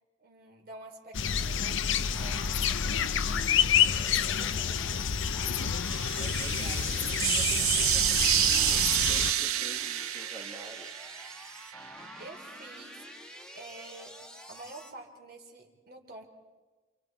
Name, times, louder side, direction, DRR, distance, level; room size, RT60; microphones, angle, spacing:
voice 1, 0.2-5.4 11.7-11.9 12.2-13.0 13.5-14.2 14.5-16.3, right 2 dB, 50° right, 0 dB, 4.3 m, -49 dB
sound 1, 1.1-9.3, left 8 dB, 60° left, 0.7 m, -28 dB
sound 2, 2.1-14.9, equal, 5° left, 1.5 m, -47 dB
sound 3, 5.8-11.7, right 13 dB, 90° right, 0.7 m, -29 dB
voice 2, 6.1-10.9, right 2 dB, 20° right, -1 dB, 1.5 m, -48 dB
28.5 x 28.0 x 4.7 m, 1.3 s
head